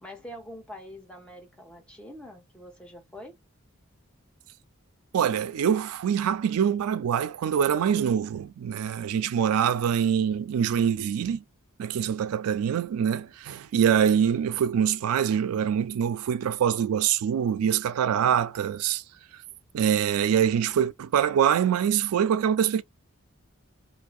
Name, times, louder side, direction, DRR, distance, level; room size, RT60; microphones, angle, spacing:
voice 1, 0.0-3.4, equal, 5° left, 0.7 m, -44 dB
voice 2, 5.1-11.4 11.8-19.0 19.7-22.8, right 8 dB, 90° right, 0.3 m, -24 dB
2.6 x 2.1 x 2.3 m
head